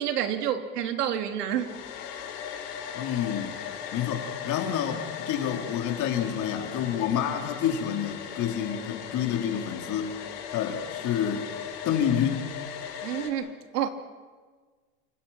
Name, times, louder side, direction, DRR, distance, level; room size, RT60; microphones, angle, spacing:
voice 1, 0.0-1.7 13.0-13.9, right 9 dB, 85° right, 6 dB, 3.1 m, -29 dB
Domestic sounds home sounds, 1.5-13.3, left 8 dB, 85° left, 6.1 m, -38 dB
voice 2, 2.9-3.6 3.9-10.1 10.5-11.5 11.8-12.5, left 9 dB, 40° left, 2 dB, 4.3 m, -28 dB
30.0 x 25.5 x 6.0 m, 1.4 s
supercardioid pair, 125°, 46 cm